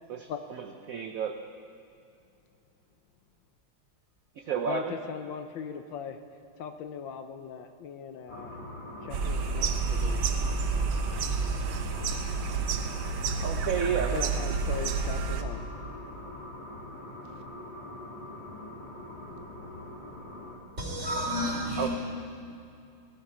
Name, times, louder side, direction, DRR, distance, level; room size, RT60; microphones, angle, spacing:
voice 1, 0.1-1.3 4.4-4.9 13.4-14.5 21.8-21.9, right 7 dB, 60° right, 5 dB, 0.9 m, -32 dB
voice 2, 4.6-6.2 6.6-8.6 9.0-10.2 14.1-15.7, left 7 dB, 75° left, 7 dB, 1.4 m, -39 dB
sound 1, 8.3-20.6, left 1 dB, 25° left, 1.9 m, -43 dB
sound 2, 9.1-15.4, right 5 dB, 80° right, 1.7 m, -29 dB
voice 3, 20.8-21.9, equal, 35° right, -2 dB, 3.7 m, -30 dB
18.5 x 14.5 x 5.0 m, 2.6 s
omnidirectional pair, 2.2 m